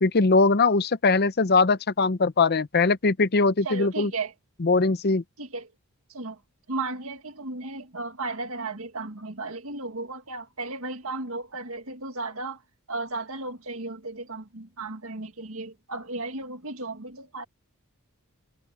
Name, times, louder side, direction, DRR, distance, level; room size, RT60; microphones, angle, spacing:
voice 1, 0.0-4.1 4.6-5.2, left 3 dB, 45° left, 0.7 m, -21 dB
voice 2, 3.6-4.3 5.4-5.7 6.1-6.4 6.7-12.6 12.9-17.4, right 3 dB, 70° right, 2.1 m, -34 dB
head